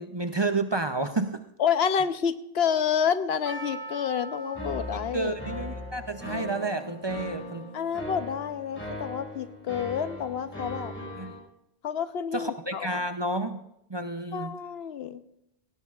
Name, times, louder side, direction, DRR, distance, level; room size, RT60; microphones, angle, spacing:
voice 1, 0.0-1.4 5.1-7.7 11.1-11.4 12.3-13.6 13.9-14.6, right 2 dB, 30° right, 8 dB, 0.5 m, -30 dB
voice 2, 1.6-5.3 7.7-10.9 11.8-12.9 14.3-15.2, left 7 dB, 80° left, 12 dB, 1.0 m, -29 dB
Percussion, 3.4-8.4, right 3 dB, 50° right, 2.1 m, -43 dB
sound 1, 4.5-11.4, left 1 dB, 10° left, 5.1 m, -39 dB
17.5 x 17.0 x 2.4 m, 0.78 s
omnidirectional pair, 1.0 m